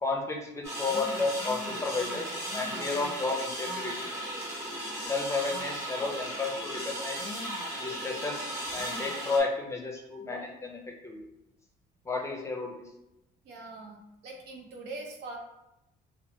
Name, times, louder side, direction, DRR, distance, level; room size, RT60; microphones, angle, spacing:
voice 1, 0.0-4.1 5.1-7.4 7.8-11.2 12.1-12.8, left 3 dB, 15° left, 1 dB, 0.5 m, -32 dB
sound 1, 0.6-9.4, right 1 dB, 15° right, 1.1 m, -36 dB
voice 2, 13.4-15.4, right 2 dB, 80° right, 1 dB, 0.7 m, -42 dB
2.9 x 2.0 x 3.0 m, 0.87 s
cardioid pair, 110°, 17 cm